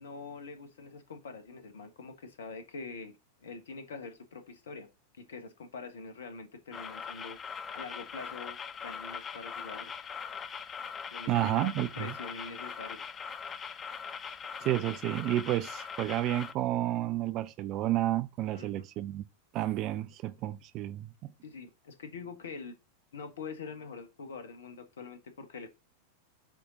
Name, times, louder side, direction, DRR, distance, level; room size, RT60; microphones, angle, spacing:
voice 1, 0.0-3.1 3.4-4.9 5.2-7.4 7.7-8.6 8.8-9.9 11.1-11.7 12.0-13.0 18.5-18.9 21.4-22.7 23.1-25.7, left 4 dB, 65° left, 1.2 m, -44 dB
sound 1, 6.7-16.5, left 6 dB, 20° left, 0.5 m, -41 dB
voice 2, 11.3-12.1 14.6-19.2 19.5-21.3, right 14 dB, 40° right, 0.5 m, -31 dB
7.4 x 3.7 x 3.9 m
figure-of-eight pair, 90°, 0 cm